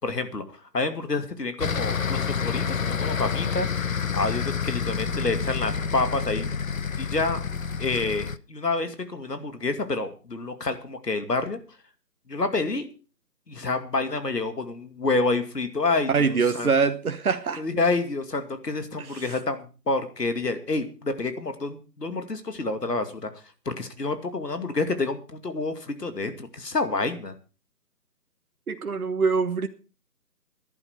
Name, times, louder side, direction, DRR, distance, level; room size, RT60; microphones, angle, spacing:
voice 1, 0.0-6.5 7.0-7.4 7.8-11.6 12.3-12.9 13.5-16.7 17.6-23.3 23.7-27.3, left 3 dB, 75° left, 2.5 m, -28 dB
sound 1, 1.6-8.4, left 6 dB, 55° left, 0.7 m, -28 dB
voice 2, 16.1-17.6 19.1-19.3 28.7-29.7, right 5 dB, 60° right, 1.2 m, -24 dB
14.5 x 11.0 x 5.0 m
figure-of-eight pair, 160°, 48 cm